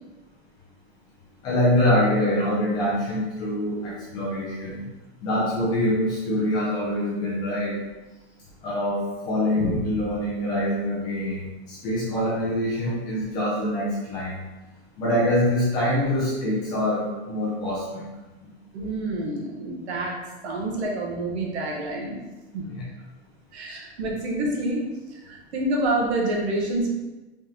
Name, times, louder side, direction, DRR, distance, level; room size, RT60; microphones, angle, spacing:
voice 1, 1.4-4.8 5.2-7.8 8.6-14.4 15.0-18.0 22.6-22.8, left 1 dB, 15° left, -7 dB, 0.4 m, -25 dB
voice 2, 18.7-22.2 22.5-22.7 23.5-26.9, right 2 dB, 85° right, -1 dB, 1.2 m, -28 dB
3.6 x 3.4 x 2.9 m, 1.1 s
supercardioid pair, 170°, 32 cm